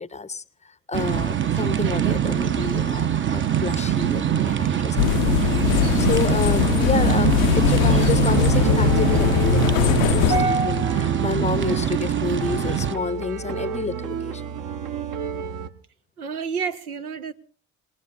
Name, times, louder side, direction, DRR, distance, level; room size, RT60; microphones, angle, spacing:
voice 1, 0.0-10.8 11.2-14.4, left 4 dB, 15° left, 0.7 m, -30 dB
sound 1, 0.9-12.9, right 9 dB, 25° right, 0.8 m, -23 dB
sound 2, 5.0-10.4, left 13 dB, 70° left, 0.7 m, -21 dB
sound 3, 7.0-15.7, right 6 dB, 45° right, 1.1 m, -31 dB
voice 2, 10.3-11.1 16.2-17.3, right 3 dB, 80° right, 0.9 m, -27 dB
26.5 x 19.5 x 2.6 m
figure-of-eight pair, 50°, 43 cm